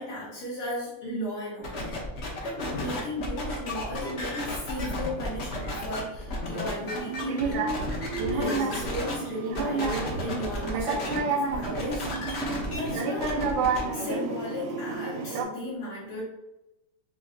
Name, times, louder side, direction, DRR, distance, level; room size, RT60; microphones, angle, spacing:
voice 1, 0.0-2.0 2.4-7.6 8.3-12.4 12.7-13.3 13.9-16.2, equal, 75° left, -11 dB, 2.4 m, -35 dB
sound 1, 1.6-9.1 9.5-11.2 11.5-13.8, left 1 dB, 60° left, 0.7 m, -33 dB
sound 2, 6.8-15.4, right 4 dB, 75° right, 1.4 m, -30 dB
6.2 x 2.4 x 2.7 m, 0.95 s
omnidirectional pair, 2.3 m